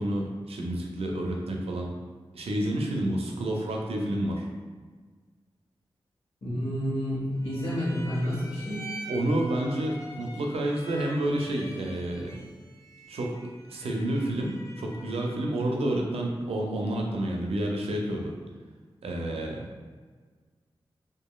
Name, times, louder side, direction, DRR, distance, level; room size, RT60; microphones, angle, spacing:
voice 1, 0.0-1.9 2.3-4.5 9.1-12.4 13.1-18.3 19.0-19.6, right 1 dB, 85° right, 0 dB, 0.4 m, -29 dB
voice 2, 6.4-8.9, equal, 80° left, -7 dB, 1.1 m, -29 dB
sound 1, 7.4-15.5, right 1 dB, 30° left, 0.4 m, -45 dB
2.8 x 2.4 x 2.3 m, 1.5 s
cardioid pair, 45°, 10 cm